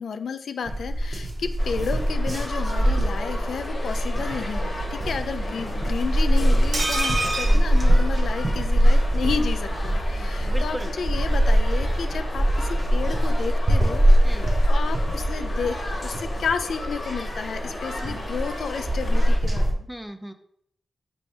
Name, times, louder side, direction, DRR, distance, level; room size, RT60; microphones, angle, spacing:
voice 1, 0.0-19.8, left 6 dB, 90° left, 9 dB, 0.3 m, -32 dB
sound 1, 0.7-19.7, equal, 40° right, 0.6 m, -23 dB
sound 2, 1.6-19.4, left 2 dB, 45° left, 0.9 m, -36 dB
sound 3, 6.7-8.7 9.0-9.1 9.4-9.5, right 2 dB, 65° right, 0.9 m, -28 dB
voice 2, 10.1-11.0 14.2-14.5 18.0-18.2 19.9-20.3, equal, ahead, 8 dB, 0.3 m, -38 dB
5.3 x 2.7 x 3.2 m, 0.69 s
wide cardioid pair, 130°, 0 cm